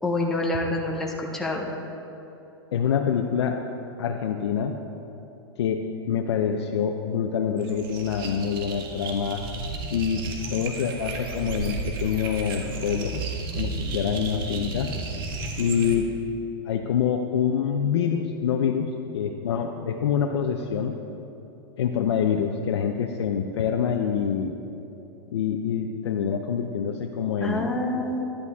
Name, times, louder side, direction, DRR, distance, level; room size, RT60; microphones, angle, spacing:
voice 1, 0.0-1.7 27.4-28.2, left 1 dB, 5° left, -2 dB, 0.8 m, -27 dB
voice 2, 2.7-3.6 4.0-4.8 5.6-9.4 9.9-13.2 13.6-14.9 15.6-16.1 16.7-21.0 21.8-24.6 25.3-27.8, left 7 dB, 85° left, 4 dB, 0.7 m, -26 dB
sound 1, 7.6-16.0, right 3 dB, 55° right, 1.5 m, -33 dB
11.5 x 11.0 x 3.6 m, 3.0 s
supercardioid pair, 160°, 14 cm